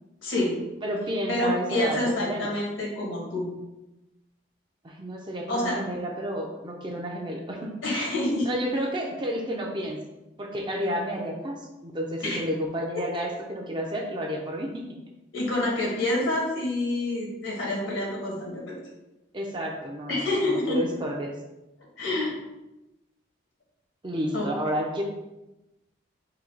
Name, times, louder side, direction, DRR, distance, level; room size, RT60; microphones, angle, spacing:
voice 1, 0.2-0.6 1.3-3.5 5.5-5.8 7.8-8.5 12.2-12.4 15.3-18.8 20.1-20.8 22.0-22.3 24.3-24.5, left 2 dB, 80° left, -3 dB, 1.4 m, -27 dB
voice 2, 0.8-2.5 4.8-7.7 8.4-10.0 10.4-14.9 19.3-20.4 20.7-21.4 24.0-25.0, equal, 25° right, 1 dB, 0.5 m, -31 dB
3.8 x 2.3 x 4.4 m, 0.99 s
head